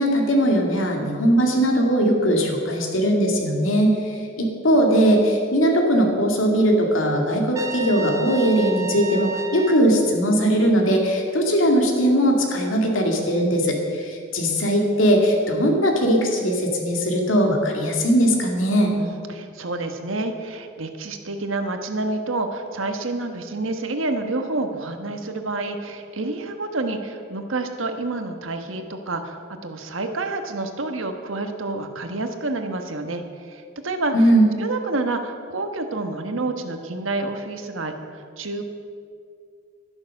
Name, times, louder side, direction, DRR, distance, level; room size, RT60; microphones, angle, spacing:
voice 1, 0.0-18.9 34.1-34.5, equal, 75° left, 1 dB, 2.4 m, -20 dB
Trumpet, 7.5-9.9, right 4 dB, 15° right, 0.9 m, -32 dB
voice 2, 19.0-34.1 34.6-37.9 38.4-38.6, right 2 dB, 80° right, 6 dB, 1.3 m, -28 dB
12.5 x 11.0 x 6.6 m, 2.2 s
head